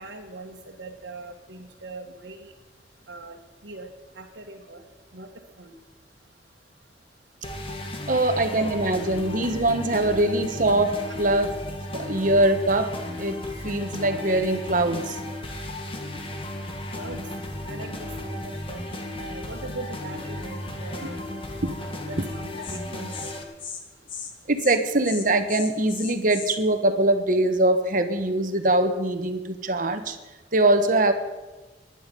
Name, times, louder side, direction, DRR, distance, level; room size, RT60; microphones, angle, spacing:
voice 1, 0.0-2.5 3.1-3.4 3.6-3.9 4.1-4.8 5.1-5.3 5.6-5.7 16.9-17.2 17.7-18.8 19.2-21.2 21.8-23.5, right 2 dB, 80° right, -2 dB, 1.7 m, -41 dB
sound 1, 7.4-23.4, left 1 dB, 30° left, 1.8 m, -35 dB
voice 2, 8.1-11.6 11.9-15.2 21.6-21.7 24.5-30.2 30.5-31.1, right 2 dB, 50° right, 7 dB, 1.4 m, -23 dB
Insect, 22.2-22.4 22.6-22.8 23.1-23.3 23.6-23.8 24.1-24.3 24.6-24.8 25.0-26.6, left 6 dB, 50° left, 2.0 m, -37 dB
19.5 x 11.5 x 5.5 m, 1.2 s
head